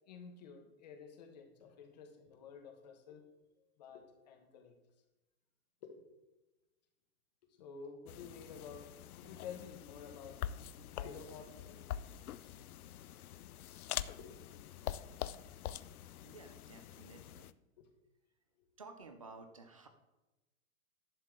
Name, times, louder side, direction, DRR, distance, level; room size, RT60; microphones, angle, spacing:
voice 1, 0.1-3.3 3.8-4.8 5.8-6.0 7.4-8.9 9.1-10.4 10.9-11.9 14.2-14.4 17.8-17.9, left 6 dB, 30° left, 4 dB, 1.2 m, -51 dB
sound 1, 8.1-17.5, left 11 dB, 85° left, 0.6 m, -45 dB
voice 2, 16.2-17.5 18.8-19.9, right 3 dB, 25° right, 7 dB, 0.5 m, -54 dB
11.5 x 8.5 x 3.7 m, 1.1 s
hypercardioid pair, 180°, 43 cm